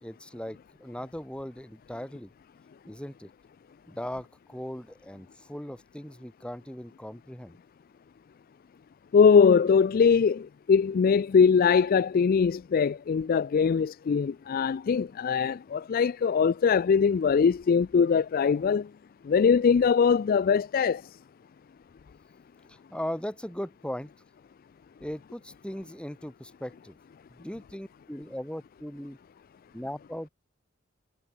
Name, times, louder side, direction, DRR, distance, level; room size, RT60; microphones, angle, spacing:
voice 1, 0.0-2.3 2.8-3.3 3.9-7.6 22.7-24.1 25.0-27.0 27.3-29.2 29.7-30.3, equal, 5° left, 2.2 m, -38 dB
voice 2, 9.1-18.9 19.3-21.0, left 6 dB, 45° left, 0.3 m, -22 dB
head